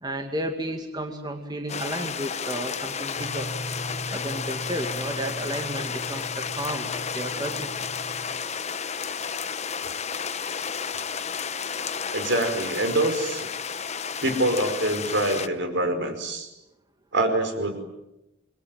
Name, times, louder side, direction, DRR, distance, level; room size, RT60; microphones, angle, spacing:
voice 1, 0.0-3.5 4.1-6.9 7.1-7.9, right 1 dB, 20° right, 4 dB, 2.2 m, -32 dB
sound 1, 1.7-15.5, left 6 dB, 35° left, 1.1 m, -32 dB
sound 2, 3.2-8.2, equal, 40° right, 5.7 m, -39 dB
voice 2, 12.1-13.5 14.2-16.5 17.1-17.8, right 1 dB, 65° right, 7 dB, 5.2 m, -25 dB
28.0 x 22.5 x 9.3 m, 0.92 s
head